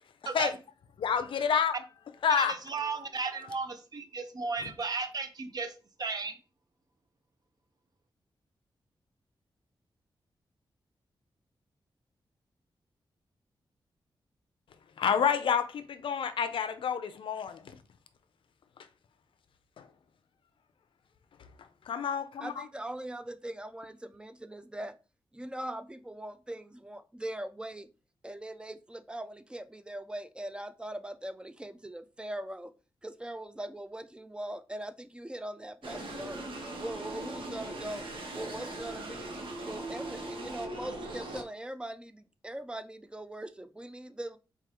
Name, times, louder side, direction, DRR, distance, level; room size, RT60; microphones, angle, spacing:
voice 1, 1.0-1.8 2.2-2.6 4.6-4.7 15.0-17.8 19.8-19.9 21.9-22.7, left 7 dB, 75° left, 0.5 m, -29 dB
voice 2, 2.4-5.7 6.0-6.4, right 4 dB, 50° right, 0.6 m, -35 dB
voice 3, 22.4-25.0 25.3-27.9 28.2-32.7 33.0-36.5 36.8-38.1 38.3-39.3 39.6-44.4, right 1 dB, 10° right, 0.3 m, -41 dB
sound 1, 35.8-41.4, right 1 dB, 80° right, 0.9 m, -40 dB
4.6 x 2.4 x 2.9 m
wide cardioid pair, 90°, 9 cm